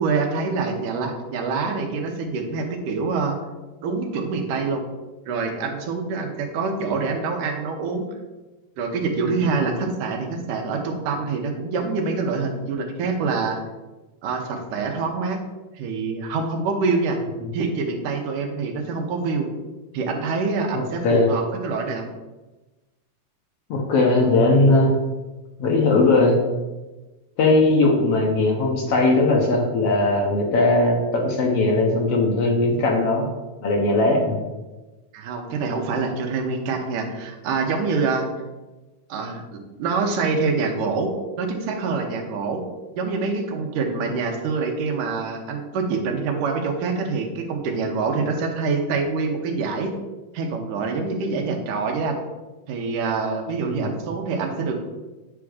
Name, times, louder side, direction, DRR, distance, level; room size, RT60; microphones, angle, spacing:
voice 1, 0.0-3.4 3.8-4.9 5.3-8.1 8.8-13.6 14.2-15.4 15.8-17.2 17.5-19.5 19.9-22.1 35.1-38.3 39.1-42.6 43.0-49.9 50.3-52.2 52.7-54.8, right 4 dB, 90° right, 3 dB, 2.7 m, -25 dB
voice 2, 20.7-21.3 23.7-25.0 25.6-26.4 27.4-33.3 33.6-34.4 53.7-53.9, left 2 dB, 60° left, 0 dB, 1.9 m, -19 dB
9.9 x 3.6 x 6.3 m, 1.1 s
omnidirectional pair, 3.6 m